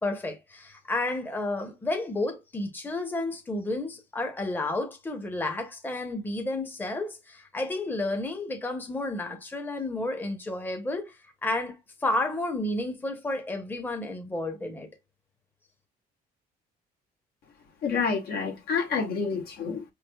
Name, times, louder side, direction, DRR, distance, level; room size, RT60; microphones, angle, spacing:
voice 1, 0.0-14.9, left 2 dB, 10° left, 0.8 m, -31 dB
voice 2, 17.8-19.8, left 5 dB, 65° left, 1.0 m, -28 dB
4.8 x 3.2 x 2.2 m
cardioid pair, 110°, 17 cm